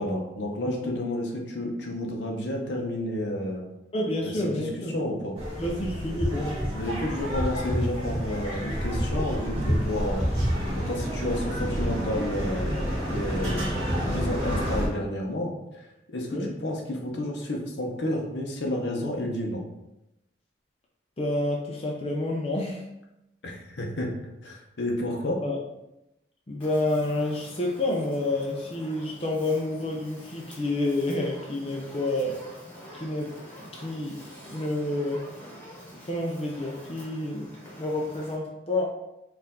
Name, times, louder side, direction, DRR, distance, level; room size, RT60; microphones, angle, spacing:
voice 1, 0.0-3.6 4.2-5.3 6.7-10.3 10.8-19.6 23.4-24.1 24.4-25.4, left 1 dB, 70° left, 0 dB, 0.8 m, -31 dB
voice 2, 3.9-4.9 5.6-6.6 16.3-16.5 21.2-22.8 25.4-25.6 26.5-32.4 32.9-34.2 34.5-35.3 35.9-37.5 37.8-38.9, left 2 dB, 30° left, -2 dB, 0.5 m, -29 dB
sound 1, 5.4-14.9, equal, 30° right, 1.4 m, -28 dB
Fire, 26.6-38.3, equal, 10° left, 1.2 m, -46 dB
4.5 x 2.5 x 3.6 m, 0.91 s
head